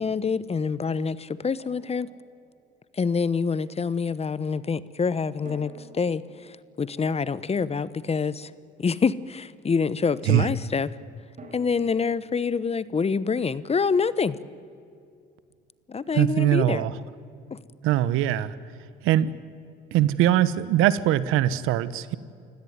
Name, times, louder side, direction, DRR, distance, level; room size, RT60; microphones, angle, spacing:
voice 1, 0.0-2.1 2.9-8.5 8.8-10.9 11.5-14.4 15.9-16.9 17.5-17.6, left 5 dB, 30° left, 17 dB, 1.0 m, -26 dB
Drum, 1.6-3.0 5.4-8.4 11.4-14.2, right 1 dB, 35° right, 4.7 m, -51 dB
voice 2, 16.2-16.9 17.8-18.6 19.0-19.3 19.9-22.2, right 12 dB, 75° right, 16 dB, 1.1 m, -21 dB
29.0 x 17.0 x 9.5 m, 2.4 s
supercardioid pair, 75°, 21 cm